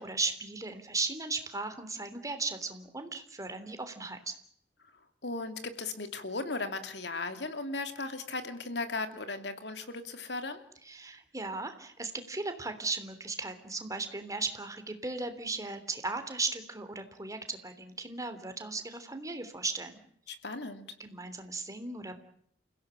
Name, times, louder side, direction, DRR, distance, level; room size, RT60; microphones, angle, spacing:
voice 1, 0.0-4.3 10.9-20.0 21.0-22.2, right 3 dB, 20° right, 8 dB, 3.3 m, -36 dB
voice 2, 5.2-10.6 20.3-20.9, left 3 dB, 70° left, 8 dB, 2.8 m, -36 dB
29.5 x 16.5 x 8.9 m, 0.68 s
head